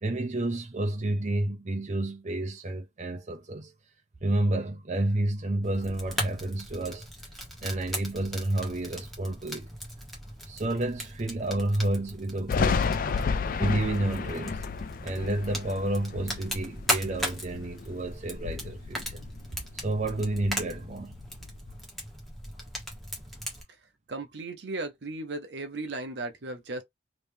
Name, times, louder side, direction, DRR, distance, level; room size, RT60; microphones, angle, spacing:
voice 1, 0.0-3.7 4.2-7.1 7.6-9.7 10.5-13.1 13.6-14.6 15.0-19.2 19.8-21.1 25.7-25.8, right 1 dB, 40° right, 0.7 m, -30 dB
Fire, 5.6-23.6, equal, ahead, 1.2 m, -38 dB
Thunder, 12.5-17.9 18.3-19.7 20.0-21.7, left 5 dB, 50° left, 0.4 m, -32 dB
voice 2, 24.1-26.8, right 2 dB, 75° right, 0.7 m, -36 dB
3.2 x 2.7 x 3.4 m
head